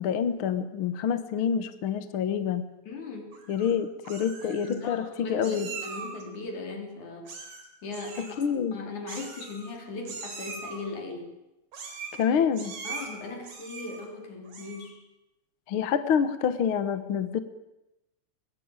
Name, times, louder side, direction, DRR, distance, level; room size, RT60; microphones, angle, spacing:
voice 1, 0.0-2.6 3.5-5.7 8.2-8.8 12.1-12.7 15.7-17.4, left 7 dB, 55° left, 12 dB, 1.8 m, -27 dB
voice 2, 2.9-3.4 4.4-7.5 7.8-11.3 12.8-15.0, left 3 dB, 80° left, 4 dB, 5.1 m, -39 dB
Meow, 3.3-3.7 4.0-4.7 5.4-6.2 7.2-7.7 7.9-8.3 9.1-9.8 10.0-10.8 11.7-12.2 12.5-13.1 13.4-14.0 14.4-14.9, right 4 dB, 90° right, 5.2 m, -41 dB
21.5 x 21.0 x 9.0 m, 0.95 s
omnidirectional pair, 3.4 m